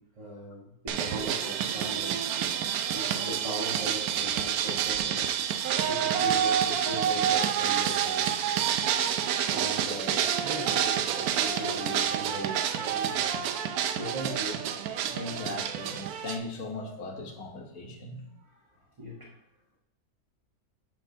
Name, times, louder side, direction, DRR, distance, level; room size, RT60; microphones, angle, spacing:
voice 1, 0.0-2.3 2.9-5.4 5.9-8.2 9.5-13.4 13.9-14.6 18.4-19.3, equal, 25° right, -6 dB, 1.1 m, -39 dB
sound 1, 0.9-16.4, right 9 dB, 80° right, 1.0 m, -28 dB
voice 2, 15.1-18.2, left 3 dB, 70° left, 3 dB, 1.5 m, -38 dB
9.2 x 5.9 x 2.7 m, 0.81 s
omnidirectional pair, 1.6 m